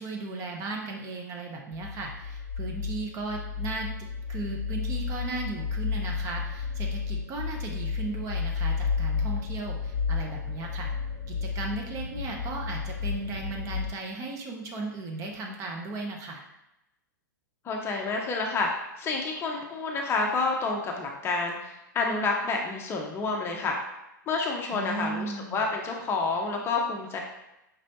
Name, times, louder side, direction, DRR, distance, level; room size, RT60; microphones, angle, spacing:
voice 1, 0.0-3.9 4.3-10.9 11.3-16.4 24.7-25.6, right 3 dB, 30° right, 1 dB, 0.8 m, -36 dB
sound 1, 1.7-13.9, left 5 dB, 55° left, 0.8 m, -32 dB
voice 2, 17.6-18.7 19.0-23.8 24.3-27.2, left 3 dB, 25° left, 1 dB, 0.6 m, -29 dB
5.2 x 3.1 x 2.8 m, 0.90 s
figure-of-eight pair, 105°, 11 cm